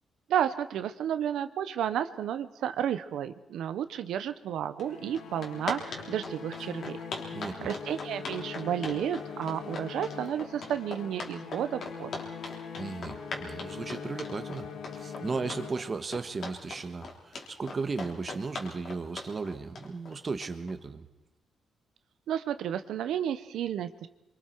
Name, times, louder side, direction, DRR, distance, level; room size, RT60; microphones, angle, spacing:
voice 1, 0.3-7.0 7.6-12.1 22.3-24.1, right 9 dB, 90° right, 11 dB, 0.8 m, -32 dB
sound 1, 4.8-16.3, left 6 dB, 85° left, 2.3 m, -42 dB
sound 2, 4.8-4.9 5.1-20.7, left 3 dB, 50° left, 3.4 m, -39 dB
voice 2, 7.3-7.7 12.7-14.7 14.9-21.1, right 4 dB, 30° right, 8 dB, 1.4 m, -35 dB
26.5 x 24.0 x 4.6 m, 0.95 s
cardioid pair, 155°, 0 cm